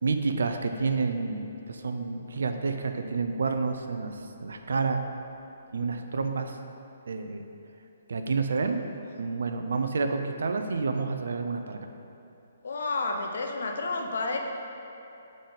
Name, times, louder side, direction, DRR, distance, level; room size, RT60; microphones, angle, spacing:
voice 1, 0.0-5.0 5.7-6.6 7.1-7.4 8.1-8.8 9.2-11.8, right 4 dB, 65° right, 7 dB, 0.4 m, -29 dB
voice 2, 12.6-14.4, left 3 dB, 60° left, 3 dB, 0.6 m, -30 dB
4.9 x 3.9 x 5.4 m, 2.8 s
figure-of-eight pair, 130°, 0 cm